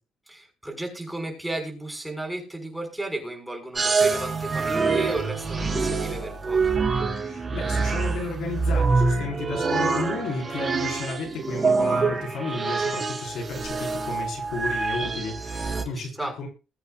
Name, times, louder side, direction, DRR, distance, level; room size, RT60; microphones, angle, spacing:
voice 1, 0.3-6.8 16.0-16.3, right 1 dB, 5° right, 2 dB, 5.9 m, -34 dB
sound 1, 3.8-15.8, right 4 dB, 35° right, 4.9 m, -26 dB
voice 2, 7.2-16.5, left 3 dB, 80° left, 1 dB, 5.2 m, -33 dB
21.0 x 8.9 x 2.6 m, 0.31 s
cardioid pair, 90°, 0 cm